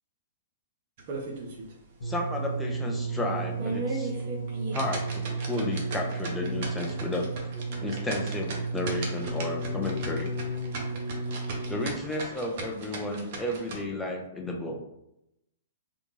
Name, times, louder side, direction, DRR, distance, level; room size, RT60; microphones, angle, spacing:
sound 1, 1.0-1.7 2.1-2.2 2.7-2.8 3.4-13.8, right 3 dB, 50° right, 0.6 m, -37 dB
sound 2, 2.0-12.1 12.9-13.0, right 2 dB, 65° left, 1.3 m, -33 dB
voice 1, 2.0-4.1 4.7-7.3 7.8-10.3 11.7-14.8, left 1 dB, 5° left, -1 dB, 0.5 m, -32 dB
2.4 x 2.2 x 3.1 m, 0.84 s
figure-of-eight pair, 115°, 0 cm